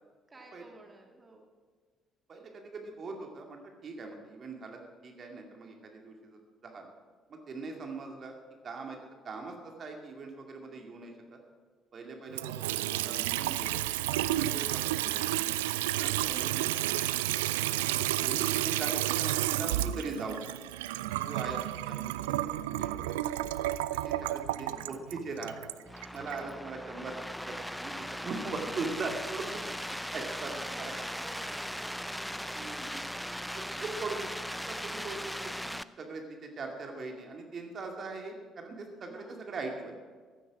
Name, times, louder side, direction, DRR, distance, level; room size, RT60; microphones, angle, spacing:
voice 1, 0.3-1.5 16.1-17.1 24.6-25.1 26.4-27.1 29.6-33.1 39.1-39.4, right 2 dB, 25° right, 2 dB, 2.2 m, -53 dB
voice 2, 2.3-6.9 7.3-8.4 8.6-9.0 9.2-11.4 11.9-13.8 14.1-15.2 15.9-16.7 17.7-20.5 21.2-21.6 21.9-23.2 23.9-25.6 26.1-27.2 27.4-29.4 30.1-30.9 32.6-32.9 33.5-40.0, right 3 dB, 45° right, 2 dB, 2.3 m, -41 dB
Water tap faucet / Sink (filling or washing) / Trickle dribble, 12.3-26.4, right 15 dB, 75° right, 0.3 m, -31 dB
sound 1, 25.9-35.8, equal, ahead, 0.6 m, -38 dB
15.5 x 13.5 x 5.0 m, 1.5 s
figure-of-eight pair, 50°, 0 cm